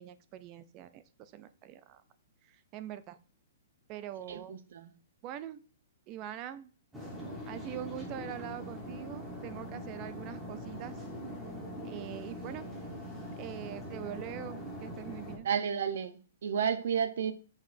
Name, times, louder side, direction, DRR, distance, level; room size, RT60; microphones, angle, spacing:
voice 1, 0.0-2.0 2.4-3.2 3.9-4.6 5.2-5.6 6.1-6.7 7.5-11.0 11.8-12.7 13.4-15.5, right 11 dB, 20° right, 0.3 m, -43 dB
voice 2, 4.3-4.9 15.4-17.3, right 7 dB, 55° right, 0.7 m, -32 dB
sound 1, 6.9-15.4, equal, 5° right, 1.1 m, -42 dB
8.2 x 6.3 x 2.6 m
hypercardioid pair, 180°, 0 cm